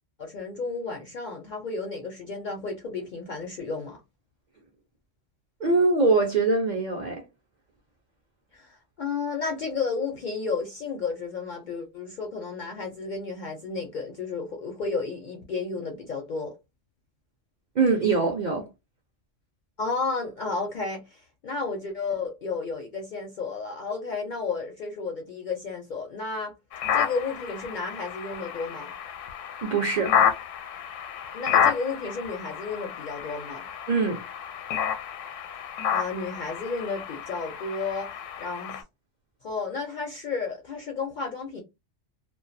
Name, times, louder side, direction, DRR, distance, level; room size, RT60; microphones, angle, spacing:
voice 1, 0.2-4.0 8.5-16.5 19.8-26.5 26.9-28.9 31.3-33.7 35.9-38.1 38.4-38.8 39.4-41.6, left 4 dB, 60° left, 0.5 m, -32 dB
voice 2, 5.6-7.2 17.8-18.7 29.6-30.1 33.9-34.2, right 3 dB, 60° right, 0.5 m, -23 dB
sound 1, 26.7-38.8, left 8 dB, 85° left, 0.9 m, -30 dB
2.2 x 2.2 x 2.5 m
omnidirectional pair, 1.3 m